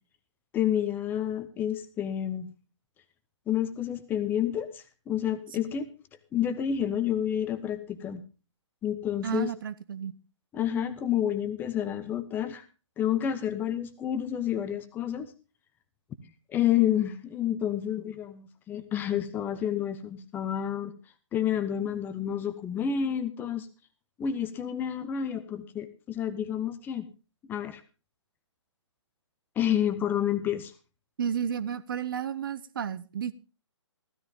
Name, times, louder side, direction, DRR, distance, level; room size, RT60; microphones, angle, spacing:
voice 1, 0.5-2.5 3.5-5.9 6.3-8.2 8.8-9.5 10.5-12.6 13.0-15.3 16.5-20.9 21.3-23.7 24.2-27.1 27.5-27.8 29.6-30.7, left 10 dB, 10° left, 11 dB, 1.0 m, -29 dB
voice 2, 9.2-10.1 31.2-33.3, right 8 dB, 45° right, 16 dB, 0.8 m, -32 dB
15.5 x 13.5 x 3.7 m, 0.33 s
figure-of-eight pair, 135°, 16 cm